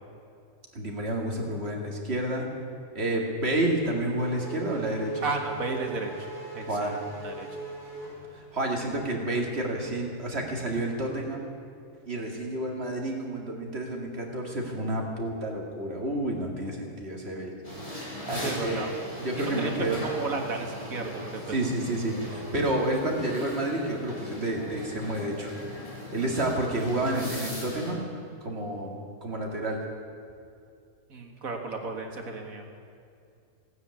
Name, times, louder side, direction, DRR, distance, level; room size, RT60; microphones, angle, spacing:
voice 1, 0.7-2.4 2.9-5.3 6.7-7.0 8.3-11.5 12.1-17.6 18.3-18.8 19.2-20.0 21.5-25.5 26.1-28.1 28.4-29.0 29.2-29.8, right 1 dB, 45° right, 0 dB, 2.5 m, -30 dB
Race car auto racing / Accelerating revving vroom, 3.6-8.8, right 3 dB, ahead, 5.3 m, -39 dB
voice 2, 5.2-6.3 6.5-7.0 7.2-7.5 18.3-18.9 19.4-21.6 31.1-32.7, right 3 dB, 75° right, 3 dB, 2.2 m, -33 dB
sound 1, 17.6-27.9, left 1 dB, 25° left, 3.0 m, -39 dB
16.5 x 9.6 x 8.4 m, 2.5 s
omnidirectional pair, 1.5 m